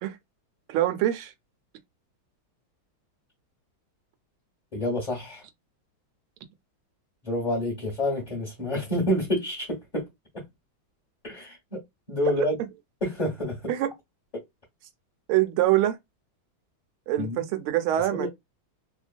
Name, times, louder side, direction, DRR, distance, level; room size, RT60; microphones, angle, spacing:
voice 1, 0.7-1.3 13.7-13.9 15.3-16.0 17.1-18.3, right 13 dB, 85° right, 1.5 m, -24 dB
voice 2, 4.7-5.4 7.2-10.1 10.3-10.4 11.2-11.8 12.1-12.6 13.0-13.7 14.3-14.4 17.2-17.4 18.1-18.3, left 1 dB, 30° left, 0.9 m, -28 dB
3.3 x 2.2 x 2.5 m
omnidirectional pair, 2.3 m